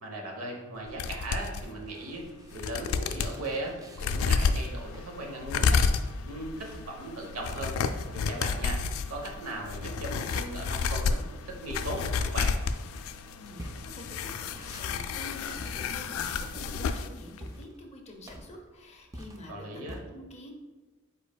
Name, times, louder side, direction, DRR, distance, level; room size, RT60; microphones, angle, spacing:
voice 1, 0.0-5.8 6.2-7.7 8.1-8.8 9.1-12.6 19.5-20.0, right 1 dB, 85° right, 1 dB, 0.9 m, -38 dB
sound 1, 0.7-9.5 9.8-20.0, equal, 15° right, 0.4 m, -48 dB
sound 2, 1.0-1.6 2.2-2.3 2.5-3.4 4.0-17.1 17.4-17.5, left 5 dB, 85° left, 0.3 m, -31 dB
voice 2, 13.4-20.5, left 1 dB, 30° left, 1 dB, 0.7 m, -47 dB
5.1 x 4.2 x 2.2 m, 1.2 s
head